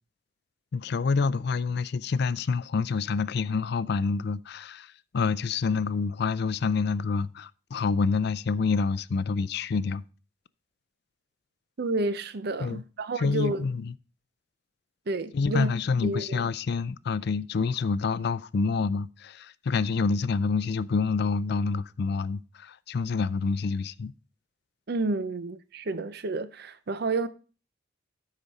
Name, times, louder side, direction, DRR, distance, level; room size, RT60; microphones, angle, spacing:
voice 1, 0.7-10.0 12.6-12.8 13.2-13.9 15.3-24.1, left 4 dB, 60° left, 0.4 m, -27 dB
voice 2, 11.8-13.7 15.1-15.7 16.0-16.4 24.9-27.3, right 2 dB, 60° right, 0.6 m, -30 dB
13.0 x 5.1 x 4.1 m
head